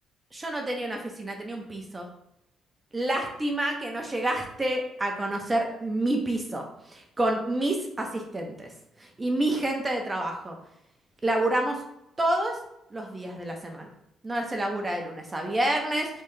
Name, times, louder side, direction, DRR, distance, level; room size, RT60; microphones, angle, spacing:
voice 1, 0.3-2.1 2.9-6.6 6.9-8.7 9.2-10.6 11.2-11.8 12.2-12.6 12.9-13.9 14.2-16.1, right 1 dB, 20° right, 2 dB, 0.8 m, -28 dB
3.5 x 3.3 x 2.8 m, 0.83 s
cardioid pair, 90°, 0 cm